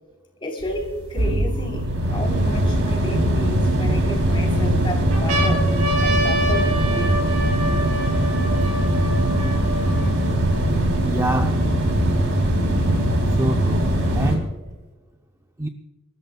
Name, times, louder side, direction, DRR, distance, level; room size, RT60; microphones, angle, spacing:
voice 1, 0.4-5.7 6.0-7.2 7.8-7.9, left 1 dB, 25° left, 1 dB, 3.6 m, -32 dB
sound 1, 0.6-14.4, right 1 dB, 65° right, 3.4 m, -21 dB
sound 2, 0.8-0.9 1.5-2.8 3.5-4.3 4.8-4.9 5.1-10.7 11.4-11.5 11.7-12.7 13.7-14.7, right 1 dB, 85° right, 3.6 m, -28 dB
voice 2, 11.0-11.7 12.4-12.5 13.4-14.5 15.6-15.7, right 1 dB, 15° right, 4 dB, 0.6 m, -26 dB
30.0 x 13.5 x 2.3 m, 1.3 s
head